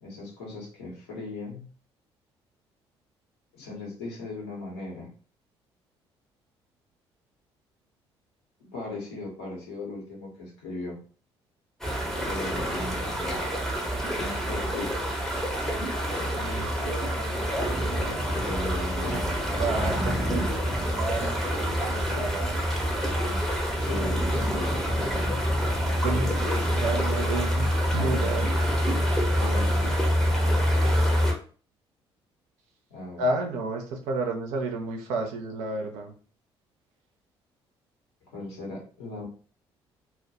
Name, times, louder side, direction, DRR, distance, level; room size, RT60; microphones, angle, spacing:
voice 1, 0.0-1.7 3.5-5.1 8.6-11.0 12.2-13.4 14.2-15.1 16.1-16.3 18.3-19.3 21.1-21.4 22.2-22.3 23.3-23.4 23.8-24.8 26.0-26.8 29.3-30.0 32.9-33.3 38.3-39.3, left 2 dB, 75° left, -3 dB, 0.9 m, -37 dB
sound 1, 11.8-31.3, equal, ahead, 0.8 m, -26 dB
voice 2, 16.3-18.3 19.0-19.2 19.6-22.5 26.0-28.6 33.2-36.1, right 3 dB, 60° right, 3 dB, 0.6 m, -32 dB
2.2 x 2.1 x 2.8 m, 0.40 s
figure-of-eight pair, 45°, 14 cm